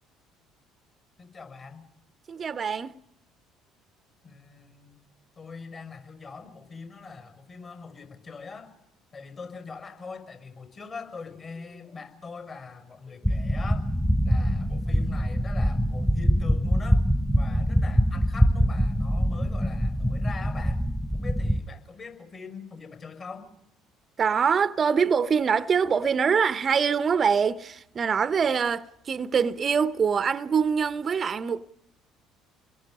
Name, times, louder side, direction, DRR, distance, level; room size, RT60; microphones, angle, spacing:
voice 1, 1.2-1.9 4.2-5.0 5.4-8.8 9.1-13.9 14.2-17.1 17.3-20.9 21.1-23.5, left 4 dB, 45° left, 6.4 m, -42 dB
voice 2, 2.3-2.9 24.2-31.7, right 6 dB, 40° right, 0.8 m, -24 dB
sound 1, 13.2-21.6, equal, 10° left, 1.5 m, -24 dB
29.5 x 22.0 x 5.4 m
hypercardioid pair, 60°, 0 cm